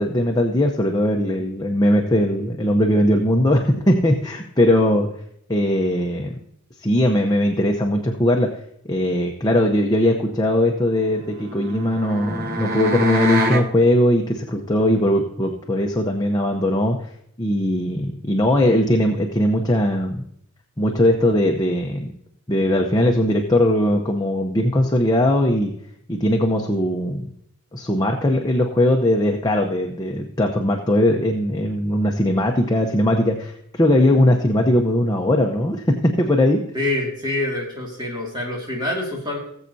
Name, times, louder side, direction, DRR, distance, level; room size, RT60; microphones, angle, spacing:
voice 1, 0.0-5.1 5.5-6.4 6.8-8.5 8.8-17.1 17.4-20.2 20.8-22.1 22.5-25.7 26.1-27.3 27.7-36.6, left 1 dB, 20° left, 1 dB, 0.7 m, -19 dB
sound 1, 11.1-13.7, equal, 45° right, 0.9 m, -25 dB
voice 2, 36.7-39.4, left 2 dB, 20° right, -2 dB, 2.4 m, -26 dB
19.0 x 7.4 x 2.7 m, 0.71 s
head